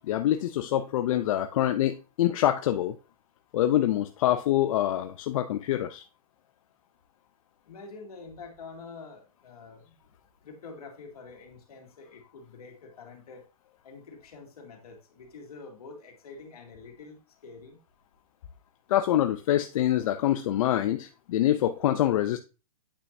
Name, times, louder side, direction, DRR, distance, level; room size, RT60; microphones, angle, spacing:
voice 1, 0.0-3.0 3.5-6.0 18.9-22.4, left 12 dB, 65° left, 0.6 m, -25 dB
voice 2, 7.7-9.9 10.4-13.4 13.8-17.8, left 4 dB, 85° left, 2.5 m, -46 dB
8.6 x 5.6 x 2.7 m
hypercardioid pair, 135°, 19 cm